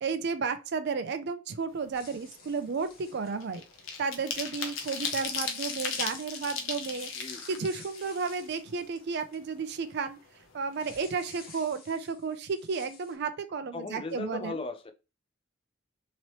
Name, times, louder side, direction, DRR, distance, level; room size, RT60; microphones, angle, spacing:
voice 1, 0.0-3.6 4.0-7.1 7.5-10.2 10.5-14.6, right 5 dB, 55° right, 0.4 m, -33 dB
sound 1, 1.8-2.0 2.4-8.8 9.2-9.3 9.6-10.6 10.9-11.0 11.3-11.6, left 5 dB, 70° left, 0.7 m, -37 dB
sound 2, 1.9-3.5 4.6-9.7 10.0-10.1 10.7-13.1, left 4 dB, 45° left, 1.1 m, -51 dB
voice 2, 13.7-14.9, left 3 dB, 25° left, 0.4 m, -37 dB
2.9 x 2.9 x 3.0 m
head